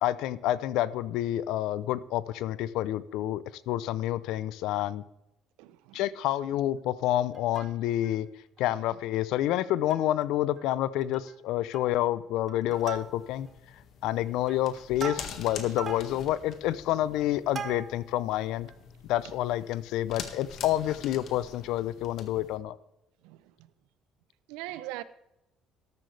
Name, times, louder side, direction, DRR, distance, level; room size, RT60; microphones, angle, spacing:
voice 1, 0.0-5.0 5.9-8.3 8.6-13.5 14.0-18.7 19.0-22.8, left 13 dB, 80° left, 0.6 m, -28 dB
voice 2, 5.6-6.0 12.7-12.8 23.2-23.5 24.5-25.0, right 16 dB, 85° right, 0.7 m, -40 dB
Plucked string instrument, 7.3-8.1 8.6-8.7 8.9-9.1 9.6-10.2 10.6-10.7 11.0-11.4 11.7-12.1 12.5-13.5 14.1-18.2 18.7-18.8, right 6 dB, 40° right, 1.3 m, -42 dB
sound 1, 12.7-22.6, left 7 dB, 65° left, 1.7 m, -46 dB
13.5 x 12.0 x 3.4 m
supercardioid pair, 75°, 0 cm